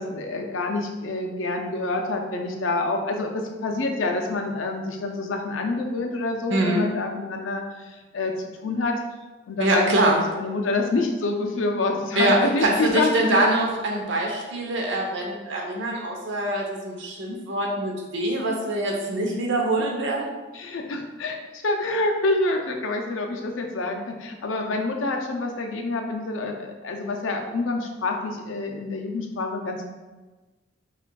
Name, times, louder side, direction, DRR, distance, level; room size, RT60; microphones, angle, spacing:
voice 1, 0.0-7.6 8.1-8.3 8.6-8.9 9.5-13.5 19.8-19.9 20.5-29.8, left 2 dB, 90° left, 3 dB, 0.5 m, -27 dB
voice 2, 6.5-6.8 9.6-10.2 12.2-20.3, right 1 dB, 75° right, 0 dB, 0.8 m, -24 dB
5.8 x 2.4 x 2.3 m, 1.2 s
head